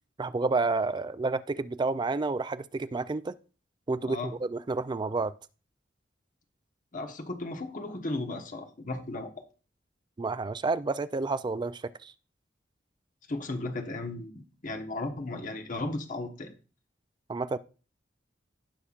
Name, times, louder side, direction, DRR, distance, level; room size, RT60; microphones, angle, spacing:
voice 1, 0.2-3.3 3.9-5.3 10.2-12.1 17.3-17.6, right 3 dB, 25° right, 0.4 m, -30 dB
voice 2, 4.0-4.4 6.9-9.4 13.3-16.6, left 2 dB, 45° left, 1.2 m, -35 dB
16.5 x 5.8 x 2.4 m
head